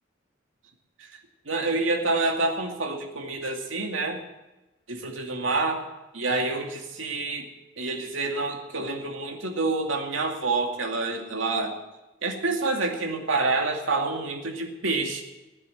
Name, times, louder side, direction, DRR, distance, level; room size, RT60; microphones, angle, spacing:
voice 1, 1.5-4.2 4.9-5.9 6.1-7.5 7.8-11.8 12.2-15.2, right 3 dB, 75° right, 2 dB, 2.4 m, -27 dB
17.0 x 9.8 x 7.7 m, 1.0 s
head